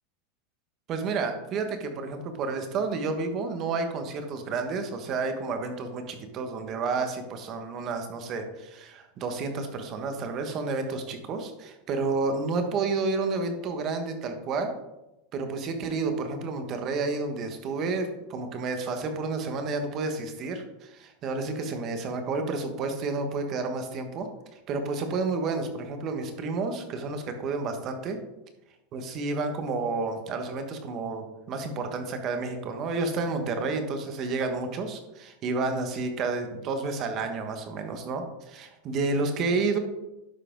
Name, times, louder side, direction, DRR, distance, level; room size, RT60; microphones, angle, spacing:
voice 1, 0.9-14.7 15.3-28.2 28.9-39.8, right 3 dB, 40° right, 6 dB, 1.3 m, -30 dB
11.5 x 4.8 x 3.8 m, 0.97 s
supercardioid pair, 135°, 0 cm